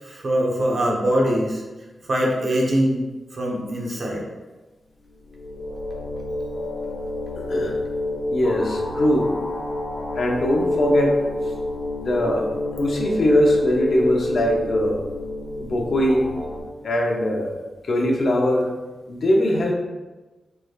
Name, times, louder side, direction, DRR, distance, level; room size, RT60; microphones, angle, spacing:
voice 1, 0.0-1.6 2.1-3.0 3.3-4.3, equal, 45° right, -1 dB, 0.7 m, -22 dB
sound 1, 5.0-16.6, left 2 dB, 75° left, 1.2 m, -29 dB
voice 2, 7.4-7.8 8.3-9.3 10.1-11.5 12.0-12.5 12.8-15.0 15.6-16.3 16.8-17.5 17.8-18.7 19.1-19.7, left 1 dB, 55° left, 0 dB, 0.6 m, -21 dB
4.6 x 3.1 x 2.3 m, 1.2 s
wide cardioid pair, 165°, 0 cm